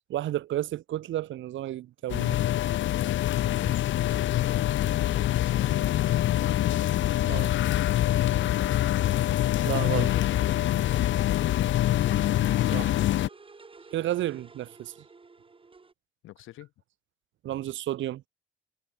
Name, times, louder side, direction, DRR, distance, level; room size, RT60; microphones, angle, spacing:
voice 1, 0.1-2.4 7.3-7.5 9.6-10.1 12.6-13.0 13.9-14.9 17.4-18.2, right 13 dB, 75° right, 1.0 m, -32 dB
sound 1, 2.1-13.3, left 13 dB, 70° left, 0.8 m, -25 dB
sound 2, 4.0-15.9, right 4 dB, 25° right, 3.9 m, -53 dB
voice 2, 7.8-8.3 11.3-11.7 16.2-16.7, left 15 dB, 90° left, 5.0 m, -46 dB
cardioid pair, 90°, 20 cm